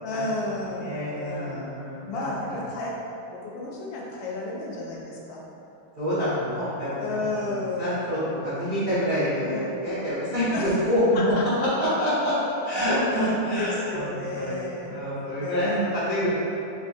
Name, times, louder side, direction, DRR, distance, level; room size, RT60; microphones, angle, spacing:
voice 1, 0.0-1.7 2.1-2.9 3.3-5.4 7.0-8.0 9.4-9.8 10.5-10.7 11.1-12.1 12.9-15.1 15.4-16.0, left 2 dB, 80° left, -4 dB, 1.3 m, -33 dB
voice 2, 0.8-2.6 6.0-7.1 7.5-8.2 8.4-10.4 10.9-11.2 11.8-12.3 12.6-14.1 14.4-16.3, equal, 50° right, -14 dB, 0.6 m, -27 dB
3.5 x 2.8 x 2.5 m, 2.9 s
omnidirectional pair, 2.1 m